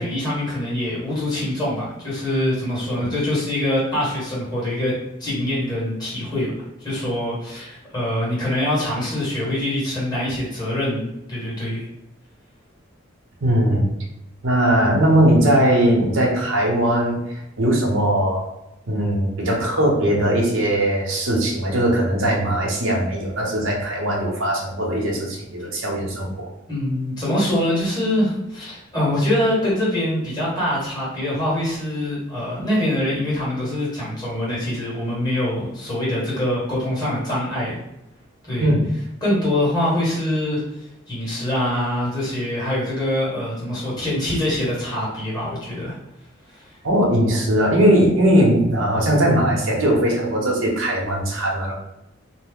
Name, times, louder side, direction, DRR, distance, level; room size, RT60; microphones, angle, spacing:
voice 1, 0.0-4.9 5.2-6.5 6.8-11.8 26.7-37.8 38.5-38.7 39.2-46.0 46.5-46.8, left 1 dB, 20° left, -8 dB, 1.4 m, -24 dB
voice 2, 13.4-13.9 14.4-17.2 17.6-18.5 18.9-26.5 38.6-38.8 46.8-51.7, right 1 dB, 80° right, -1 dB, 0.8 m, -19 dB
2.7 x 2.0 x 3.5 m, 0.87 s
head